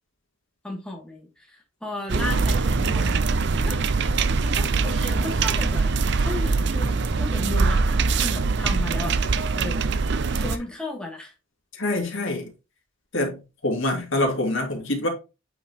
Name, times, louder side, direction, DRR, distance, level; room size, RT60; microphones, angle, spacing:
voice 1, 0.6-3.2 3.6-3.8 4.4-9.2 9.6-9.8 10.3-11.3, left 2 dB, 5° left, 2.6 m, -34 dB
sound 1, 2.1-10.6, right 4 dB, 50° right, 0.6 m, -23 dB
voice 2, 11.8-12.5 13.1-13.4 13.6-15.1, left 1 dB, 55° left, 2.6 m, -25 dB
8.6 x 5.3 x 3.0 m
head